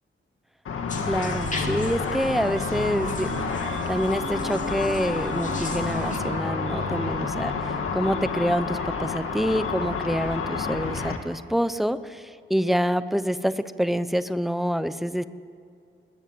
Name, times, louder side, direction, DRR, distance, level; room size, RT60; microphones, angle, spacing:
Car / Traffic noise roadway noise / Engine, 0.7-11.2, left 5 dB, 90° left, 2.1 m, -29 dB
sound 1, 0.9-6.2, left 3 dB, 35° left, 2.5 m, -38 dB
voice 1, 1.1-3.3 3.9-7.5 7.9-12.2 12.5-13.5 13.8-15.2, equal, ahead, 12 dB, 0.7 m, -26 dB
Wind instrument woodwind instrument, 1.1-7.8, right 3 dB, 75° right, 4.7 m, -37 dB
21.0 x 20.5 x 7.8 m, 2.3 s
wide cardioid pair, 160°, 21 cm